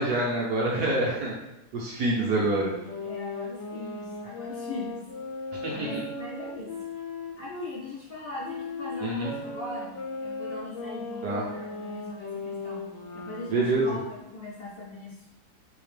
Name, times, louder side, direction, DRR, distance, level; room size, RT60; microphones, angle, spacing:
voice 1, 0.0-1.3 1.7-2.7 5.6-5.9 9.0-9.3 11.2-11.4 13.5-14.0, right 2 dB, 65° right, -3 dB, 1.1 m, -26 dB
sound 1, 2.0-7.7 8.4-13.8, left 3 dB, 75° left, 1.3 m, -37 dB
voice 2, 2.1-2.7 3.0-5.0 5.7-6.8 7.4-12.9 13.1-15.2, left 2 dB, 60° left, -6 dB, 0.9 m, -40 dB
4.1 x 2.8 x 3.2 m, 0.94 s
omnidirectional pair, 2.2 m